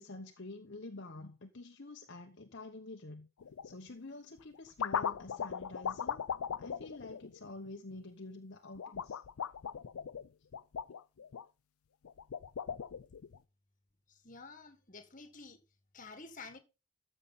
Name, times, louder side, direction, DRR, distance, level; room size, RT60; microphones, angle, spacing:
voice 1, 0.0-3.3 3.6-6.2 6.6-9.2, left 2 dB, 50° left, 1.0 m, -48 dB
sound 1, 3.4-3.7 4.4-7.9 8.8-11.4 12.0-13.4, left 7 dB, 75° left, 0.4 m, -39 dB
voice 2, 14.1-15.6 15.9-16.6, left 3 dB, 35° left, 1.7 m, -50 dB
13.5 x 6.7 x 4.1 m
head